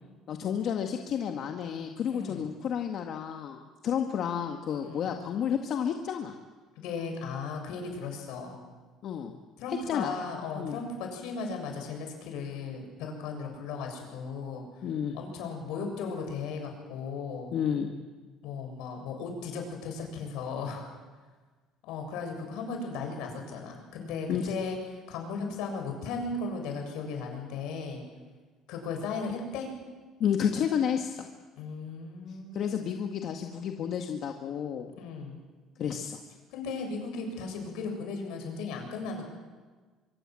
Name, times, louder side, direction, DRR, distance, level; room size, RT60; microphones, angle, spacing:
voice 1, 0.3-6.3 9.0-9.4 9.7-10.1 10.6-10.8 14.8-15.2 17.5-17.9 24.3-24.5 30.2-31.3 32.3-34.9 35.8-36.2, left 8 dB, 55° left, 4 dB, 1.9 m, -31 dB
voice 2, 2.1-2.4 4.8-5.0 6.8-8.6 9.6-14.6 15.1-17.5 18.4-20.9 21.9-24.8 25.1-28.0 28.7-29.7 31.6-32.9 35.0-35.4 36.5-39.2, left 4 dB, 80° left, 3 dB, 7.3 m, -36 dB
24.5 x 24.5 x 7.8 m, 1.4 s
cardioid pair, 105°, 0 cm